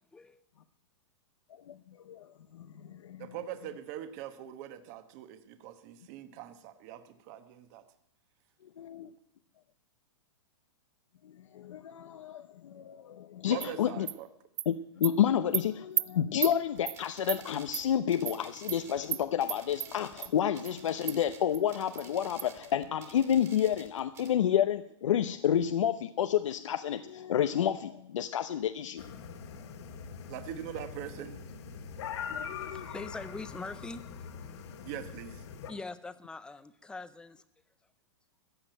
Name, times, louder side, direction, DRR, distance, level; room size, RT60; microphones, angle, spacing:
voice 1, 2.5-3.3 8.8-9.1 11.2-14.1 14.7-29.2 32.3-32.9, left 9 dB, 85° left, 10 dB, 0.8 m, -30 dB
voice 2, 3.2-7.8 13.5-14.3 30.3-31.4 34.8-35.4, right 11 dB, 35° right, 10 dB, 1.2 m, -42 dB
Animal, 13.6-13.7 14.1-14.2 14.6-14.7 15.0-15.1 15.5-15.6 16.0-16.1 16.4-16.5 16.9-17.0 17.3-17.4 17.7-17.8 18.2-18.4 18.7-18.8 19.1-19.2 19.5-19.9 20.2-20.3 20.6-20.7 21.1-21.2 21.5-21.6 22.0-22.1 22.4-22.5, right 14 dB, 60° right, 0.5 m, -32 dB
sound 1, 16.6-24.3, right 6 dB, 20° right, 1.9 m, -53 dB
sound 2, 29.0-35.7, left 6 dB, 60° left, 2.0 m, -43 dB
voice 3, 32.6-34.4 35.7-37.4, left 3 dB, 5° left, 14 dB, 0.5 m, -43 dB
15.0 x 7.7 x 9.0 m, 0.76 s
hypercardioid pair, 155°, 16 cm